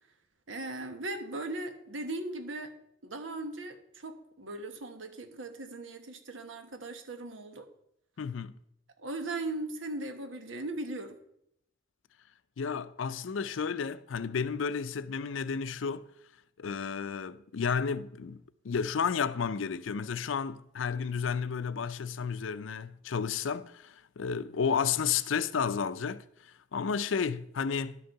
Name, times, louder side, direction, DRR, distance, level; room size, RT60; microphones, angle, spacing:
voice 1, 0.5-2.7 3.0-7.7 9.0-11.2, right 2 dB, 85° right, 1.2 m, -38 dB
voice 2, 8.2-8.6 12.6-16.1 16.6-26.2 26.7-28.0, left 6 dB, 85° left, 0.5 m, -32 dB
11.5 x 6.6 x 4.7 m
head